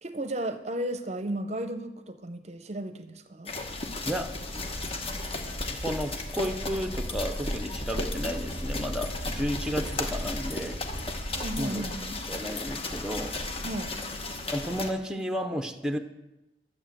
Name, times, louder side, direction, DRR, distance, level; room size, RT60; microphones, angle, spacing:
voice 1, 0.0-3.5 4.1-4.2 11.4-12.2 13.6-13.9, right 1 dB, 40° right, 10 dB, 0.7 m, -34 dB
sound 1, 3.5-14.9, left 1 dB, 35° left, 1.2 m, -34 dB
voice 2, 5.8-10.8 11.6-11.8 12.3-13.4 14.5-16.0, equal, 5° right, 6 dB, 0.7 m, -32 dB
11.5 x 7.9 x 7.5 m, 0.98 s
head